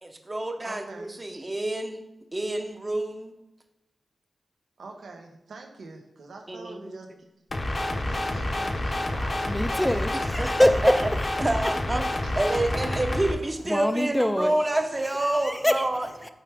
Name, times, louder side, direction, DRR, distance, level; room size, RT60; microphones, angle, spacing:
voice 1, 0.0-2.0 2.3-3.3 6.5-7.0 10.4-10.9 11.4-12.0 12.4-16.1, right 1 dB, 25° right, 5 dB, 0.7 m, -28 dB
voice 2, 0.6-1.2 4.8-7.1 7.7-9.8 10.4-10.5 12.2-12.6, right 3 dB, 85° right, 2 dB, 1.0 m, -44 dB
sound 1, 7.5-13.3, left 1 dB, 35° left, 0.7 m, -28 dB
voice 3, 9.5-11.3 13.6-14.6 15.2-15.9 16.2-16.3, left 1 dB, 10° left, 9 dB, 0.4 m, -24 dB
7.3 x 4.7 x 3.4 m, 0.93 s
wide cardioid pair, 115°, 0 cm